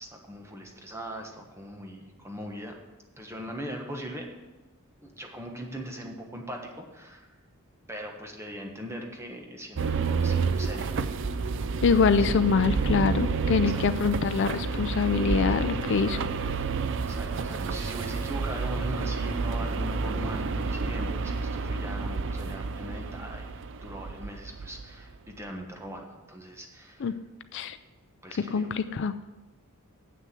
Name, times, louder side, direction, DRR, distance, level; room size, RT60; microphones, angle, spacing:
voice 1, 0.0-2.8 3.2-4.3 5.0-7.3 7.9-11.1 12.3-12.5 13.7-13.8 15.5-16.8 17.1-23.5 23.8-27.1 28.2-28.7, equal, 10° right, 2 dB, 1.2 m, -40 dB
sound 1, 9.7-24.9, right 4 dB, 60° right, 0.5 m, -30 dB
voice 2, 11.8-16.2 27.0-27.1 27.5-27.8 28.5-29.1, left 5 dB, 55° left, 12 dB, 0.4 m, -24 dB
7.9 x 6.3 x 7.6 m, 1.1 s
head